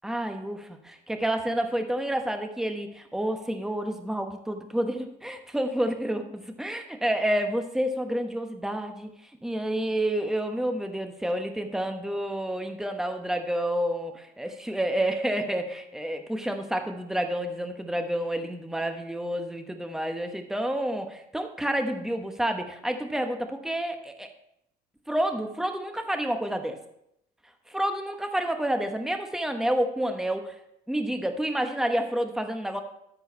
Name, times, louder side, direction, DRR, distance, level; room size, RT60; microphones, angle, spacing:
voice 1, 0.0-9.1 9.4-24.3 25.1-26.8 27.7-30.5 30.9-32.8, right 1 dB, 5° right, 6 dB, 1.1 m, -29 dB
12.5 x 4.6 x 5.6 m, 0.77 s
cardioid pair, 110°, 17 cm